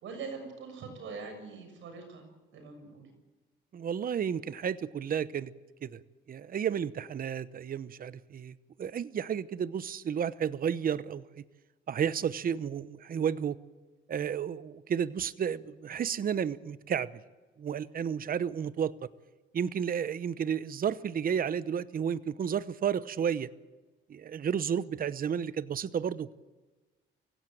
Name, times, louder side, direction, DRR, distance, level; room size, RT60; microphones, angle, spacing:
voice 1, 0.0-3.1, right 4 dB, 75° right, 6 dB, 6.7 m, -43 dB
voice 2, 3.7-5.5 5.8-6.0 6.3-11.2 11.9-13.6 14.1-17.1 17.6-18.9 19.5-23.5 24.1-26.3, right 8 dB, 45° right, 16 dB, 0.9 m, -32 dB
23.5 x 16.5 x 9.1 m, 1.2 s
cardioid pair, 90°, 20 cm